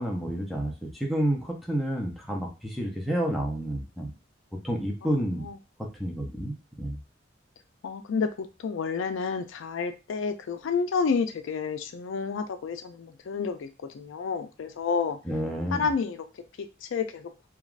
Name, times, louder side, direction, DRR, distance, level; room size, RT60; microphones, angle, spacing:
voice 1, 0.0-4.1 4.6-5.5 5.8-7.0 15.3-15.9, right 1 dB, ahead, -2 dB, 0.6 m, -30 dB
voice 2, 5.0-5.6 7.8-13.7 13.9-15.2 15.7-16.3 16.6-17.3, left 5 dB, 80° left, 8 dB, 0.4 m, -30 dB
3.3 x 2.3 x 2.4 m, 0.29 s
head